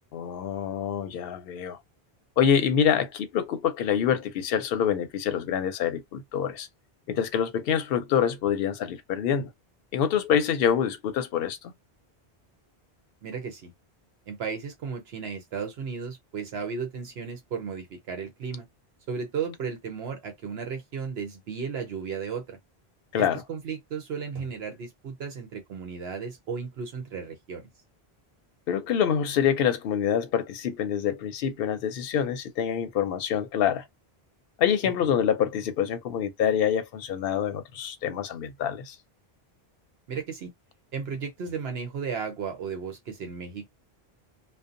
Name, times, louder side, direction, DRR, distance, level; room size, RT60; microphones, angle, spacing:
voice 1, 0.1-1.8 2.4-6.7 7.1-9.5 9.9-11.7 23.1-23.4 28.7-33.8 34.6-39.0, left 8 dB, 70° left, 0.7 m, -26 dB
voice 2, 13.2-13.7 14.3-18.6 19.1-22.6 23.1-27.7 34.8-34.9 40.1-40.5 40.9-43.7, right 6 dB, 75° right, 0.9 m, -34 dB
2.6 x 2.1 x 2.5 m
omnidirectional pair, 1.1 m